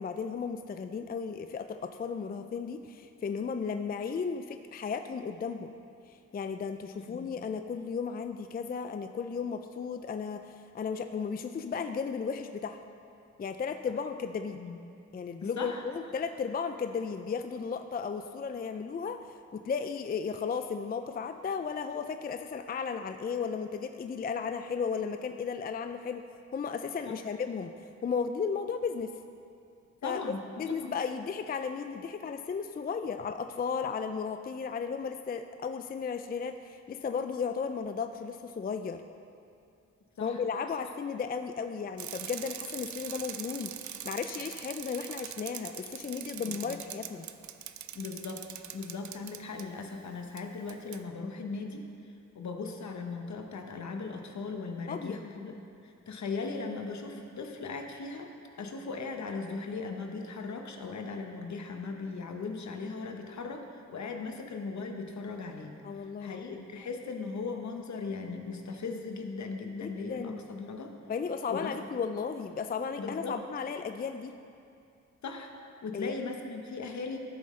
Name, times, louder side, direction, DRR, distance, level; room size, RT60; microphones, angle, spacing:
voice 1, 0.0-5.7 6.1-12.8 13.4-14.6 15.1-19.2 19.5-26.2 26.5-27.7 28.0-29.2 30.0-30.2 30.6-39.0 40.2-47.3 54.9-55.2 65.8-66.7 69.8-70.4 71.1-74.4 75.9-76.2, left 6 dB, 30° left, 8 dB, 0.3 m, -35 dB
voice 2, 6.9-7.3 14.5-14.8 15.4-15.8 27.0-27.2 30.0-30.9 40.2-40.4 46.4-46.8 47.9-55.5 55.8-58.3 58.6-70.9 71.5-71.8 73.0-73.4 75.2-75.5 75.8-77.2, left 4 dB, 65° left, 4 dB, 1.0 m, -38 dB
Bicycle, 42.0-49.6 50.4-50.5 50.7-51.0, right 10 dB, 70° right, 0.5 m, -42 dB
13.0 x 7.5 x 3.2 m, 2.5 s
cardioid pair, 65°, 30 cm